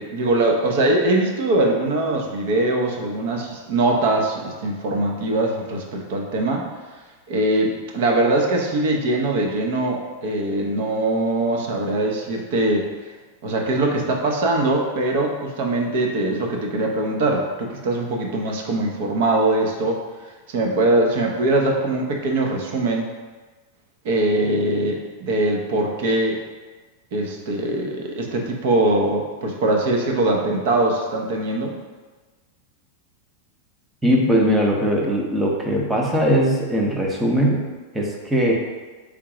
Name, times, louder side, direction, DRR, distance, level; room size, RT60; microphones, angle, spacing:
voice 1, 0.0-6.7 7.3-12.9 13.4-20.0 20.5-23.1 24.0-26.4 27.1-31.7, right 2 dB, 60° right, 1 dB, 0.8 m, -22 dB
voice 2, 34.0-37.6 37.9-38.5, equal, 5° right, -2 dB, 0.6 m, -20 dB
3.6 x 3.0 x 4.8 m, 1.3 s
supercardioid pair, 160°, 0 cm